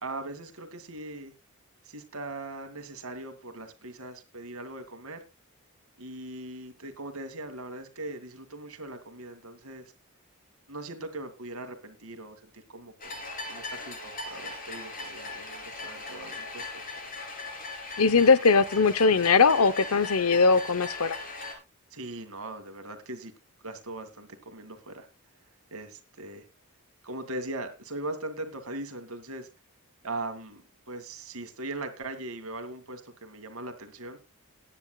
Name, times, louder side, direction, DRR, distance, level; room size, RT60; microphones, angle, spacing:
voice 1, 0.0-1.3 1.8-5.2 6.0-9.9 10.7-13.2 13.5-16.8 21.9-23.3 23.6-25.1 25.7-26.4 27.0-29.5 30.0-30.6 30.9-34.2, right 2 dB, 75° right, 8 dB, 2.2 m, -40 dB
sound 1, 13.0-21.5, left 3 dB, 40° left, 3.5 m, -39 dB
voice 2, 18.0-21.2, left 4 dB, 75° left, 16 dB, 0.9 m, -20 dB
19.5 x 9.9 x 2.3 m, 0.26 s
head